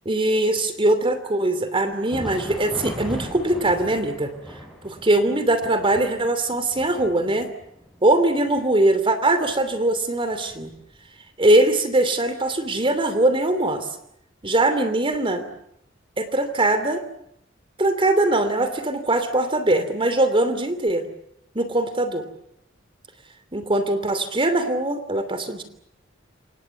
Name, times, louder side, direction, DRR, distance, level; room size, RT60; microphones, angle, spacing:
voice 1, 0.1-4.3 4.8-7.5 8.0-10.7 11.4-13.9 14.4-15.5 16.2-17.0 17.8-21.1 21.5-22.2 23.5-25.6, right 2 dB, 25° right, 10 dB, 2.9 m, -21 dB
Thunder, 1.9-11.3 11.7-11.8 12.5-12.7 13.7-13.8, equal, ahead, 6.9 m, -39 dB
29.0 x 26.5 x 7.1 m, 0.75 s
head